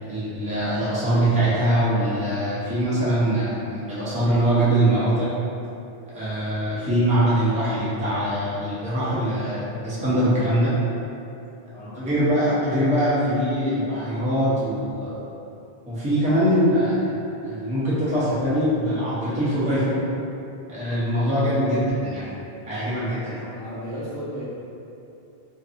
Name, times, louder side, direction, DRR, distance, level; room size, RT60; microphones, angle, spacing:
voice 1, 0.1-5.3 6.1-10.7 11.8-15.3 15.9-17.2 17.4-20.0 20.7-22.3 22.6-23.4, right 1 dB, 10° right, -11 dB, 0.5 m, -23 dB
voice 2, 23.4-24.5, equal, 35° left, -15 dB, 1.0 m, -35 dB
2.6 x 2.5 x 2.5 m, 2.8 s
omnidirectional pair, 1.0 m